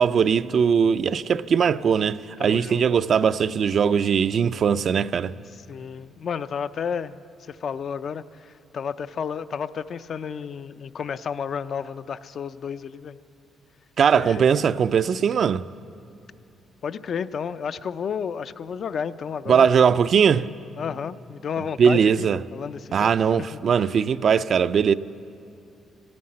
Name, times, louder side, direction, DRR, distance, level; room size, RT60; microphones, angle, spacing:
voice 1, 0.0-5.3 14.0-15.6 19.5-20.5 21.8-22.4 22.9-24.9, right 7 dB, 55° right, 0.4 m, -20 dB
voice 2, 2.4-2.8 5.5-7.2 7.5-13.2 14.1-14.5 16.8-19.7 20.8-23.6, left 7 dB, 55° left, 0.4 m, -32 dB
16.0 x 9.5 x 8.7 m
cardioid pair, 90°, 0 cm